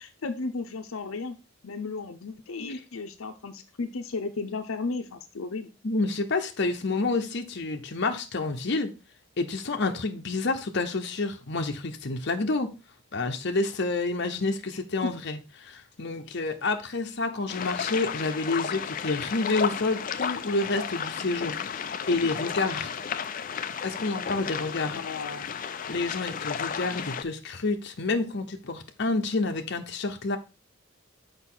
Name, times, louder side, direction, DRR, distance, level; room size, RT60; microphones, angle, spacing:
voice 1, 0.0-1.4 1.6-5.7 15.0-15.1 22.4-22.8 24.9-25.5, left 3 dB, 85° left, 0.7 m, -34 dB
voice 2, 5.8-8.9 9.4-12.7 13.1-22.9 23.8-25.0 25.9-30.4, left 3 dB, 55° left, 0.8 m, -29 dB
sound 1, 17.5-27.2, left 7 dB, 40° left, 0.4 m, -33 dB
6.4 x 5.2 x 3.8 m
head